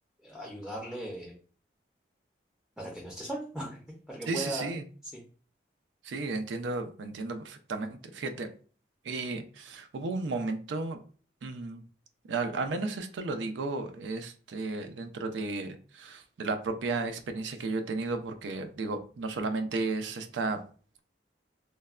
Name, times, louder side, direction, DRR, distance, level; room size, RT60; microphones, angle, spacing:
voice 1, 0.2-1.3 2.8-4.7 5.1-5.2, right 1 dB, ahead, -3 dB, 0.4 m, -38 dB
voice 2, 4.3-4.8 6.0-8.5 9.0-11.0 11.4-11.8 12.3-20.6, right 3 dB, 90° right, 7 dB, 0.4 m, -33 dB
3.2 x 2.1 x 2.3 m, 0.40 s
head